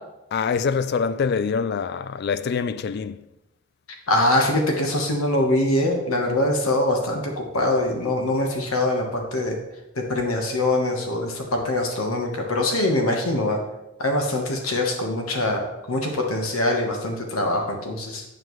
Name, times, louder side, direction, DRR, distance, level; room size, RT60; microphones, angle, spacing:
voice 1, 0.3-3.2, left 5 dB, 50° left, 0.3 m, -25 dB
voice 2, 4.1-9.6 9.9-13.6 14.0-18.2, left 1 dB, 80° left, 1.2 m, -23 dB
9.0 x 7.5 x 3.1 m
head